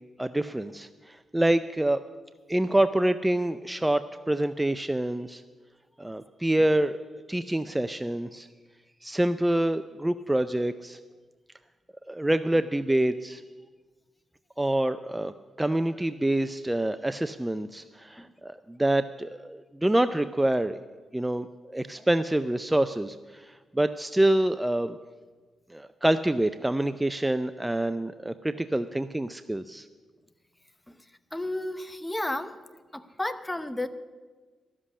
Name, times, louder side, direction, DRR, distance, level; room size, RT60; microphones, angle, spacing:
voice 1, 0.2-2.0 2.5-5.4 6.0-7.0 7.3-8.5 9.0-11.0 12.1-13.4 14.6-15.3 15.6-20.8 21.1-25.0 25.7-29.9, right 1 dB, 10° right, 11 dB, 0.4 m, -26 dB
voice 2, 31.3-32.6 32.9-33.9, left 1 dB, 10° left, 11 dB, 0.8 m, -32 dB
13.0 x 7.5 x 10.0 m, 1.4 s
cardioid pair, 80°, 0 cm